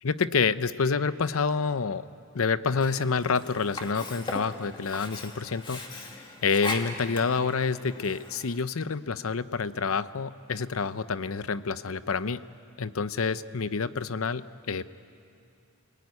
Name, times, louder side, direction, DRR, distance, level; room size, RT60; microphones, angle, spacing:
voice 1, 0.0-2.0 2.3-12.4 12.8-14.8, left 5 dB, 90° left, 14 dB, 0.7 m, -28 dB
Sink (filling or washing), 2.7-8.7, left 2 dB, 25° left, 2.3 m, -39 dB
29.0 x 19.0 x 9.7 m, 2.6 s
head